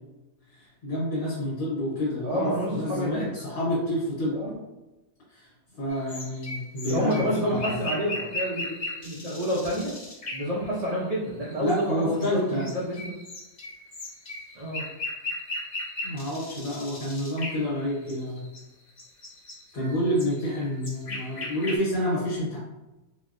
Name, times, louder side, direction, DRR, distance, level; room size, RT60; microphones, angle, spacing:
voice 1, 0.5-4.4 5.3-5.5 5.8-7.8 11.6-12.7 16.0-18.4 19.7-22.6, equal, 75° left, -7 dB, 1.4 m, -28 dB
voice 2, 2.2-3.3 4.4-4.6 6.8-9.9 10.3-13.1 14.5-14.9, equal, 65° right, -5 dB, 0.3 m, -29 dB
sound 1, 5.9-11.1 11.4-18.6 18.9-21.8, left 2 dB, 45° left, 0.6 m, -37 dB
3.9 x 2.1 x 2.5 m, 1.0 s
omnidirectional pair, 1.5 m